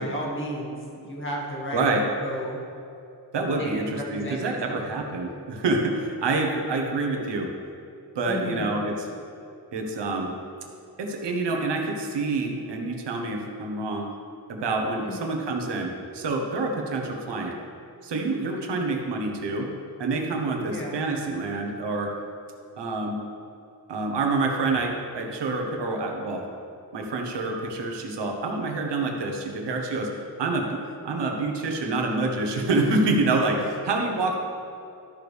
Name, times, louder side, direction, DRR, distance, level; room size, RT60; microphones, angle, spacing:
voice 1, 0.0-1.9 2.2-2.6 3.6-4.9 8.3-8.8 15.0-15.4 18.6-19.0 20.7-21.0, equal, 30° left, -2 dB, 1.9 m, -34 dB
voice 2, 1.7-2.0 3.3-7.5 8.1-9.1 9.7-10.3 11.0-14.1 14.5-17.6 18.0-19.7 20.0-22.1 22.8-23.2 23.9-26.5 26.9-30.1 30.4-34.4, right 3 dB, 85° right, 2 dB, 1.3 m, -27 dB
13.0 x 6.3 x 3.5 m, 2.6 s
cardioid pair, 105°, 41 cm